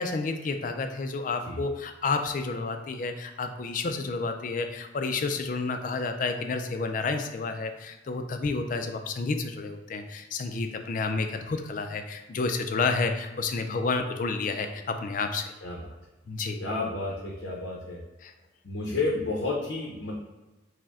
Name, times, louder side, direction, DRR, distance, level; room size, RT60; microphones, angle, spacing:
voice 1, 0.0-15.5 16.3-16.6 18.2-18.3, left 4 dB, 45° left, 6 dB, 0.3 m, -30 dB
voice 2, 15.6-15.9 16.6-18.0 18.6-20.2, left 3 dB, 75° left, -3 dB, 0.7 m, -31 dB
4.8 x 2.1 x 3.5 m, 1.1 s
head